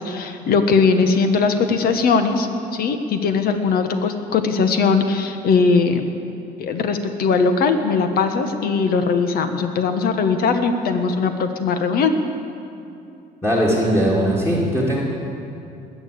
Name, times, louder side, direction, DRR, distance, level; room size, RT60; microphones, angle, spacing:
voice 1, 0.0-6.0 6.6-12.1, left 4 dB, 65° left, 7 dB, 1.4 m, -19 dB
voice 2, 13.4-15.0, equal, 10° left, -5 dB, 2.6 m, -19 dB
20.5 x 7.2 x 8.6 m, 2.6 s
cardioid pair, 110°, 17 cm